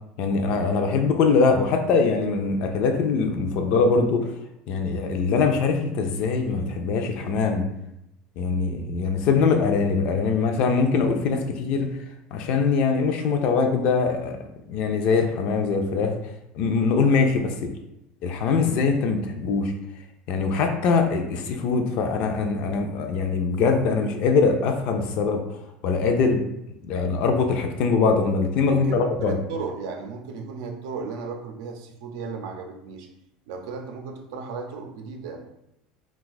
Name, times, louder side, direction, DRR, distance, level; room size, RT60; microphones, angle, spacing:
voice 1, 0.2-4.3 4.7-7.6 8.4-11.9 12.3-14.4 14.7-16.1 16.5-17.7 18.2-19.7 20.3-25.4 25.8-26.4 26.8-29.4, left 4 dB, 55° left, 5 dB, 0.4 m, -22 dB
voice 2, 28.7-33.1 33.5-35.5, right 5 dB, 85° right, 3 dB, 0.5 m, -35 dB
2.5 x 2.3 x 3.9 m, 0.85 s
cardioid pair, 145°, 2 cm